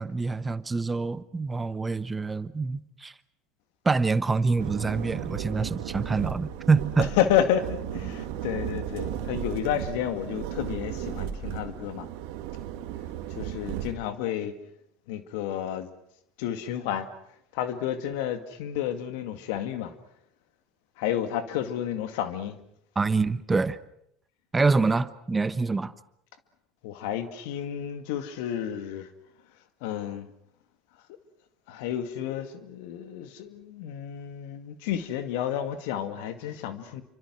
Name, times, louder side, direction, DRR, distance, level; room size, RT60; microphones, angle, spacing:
voice 1, 0.0-3.1 3.8-7.1 22.9-23.8 24.5-25.9, right 4 dB, 20° right, 1.2 m, -26 dB
sound 1, 4.6-14.0, right 10 dB, 70° right, 2.2 m, -35 dB
voice 2, 7.2-12.1 13.4-14.5 15.1-15.9 16.4-17.1 17.5-19.9 21.0-22.6 26.8-29.1 29.8-30.3 31.7-37.0, left 10 dB, 70° left, 2.1 m, -30 dB
28.5 x 25.0 x 6.2 m
hypercardioid pair, 80°, 0 cm